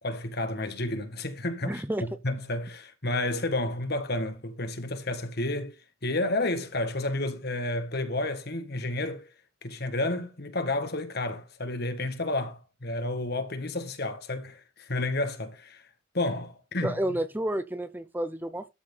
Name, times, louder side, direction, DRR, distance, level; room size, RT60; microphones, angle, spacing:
voice 1, 0.0-5.7 6.0-9.2 9.6-15.8 16.1-17.2, left 2 dB, 50° left, 1.7 m, -31 dB
voice 2, 1.6-2.0 16.8-18.7, right 1 dB, 10° right, 0.6 m, -30 dB
13.0 x 4.3 x 5.5 m
head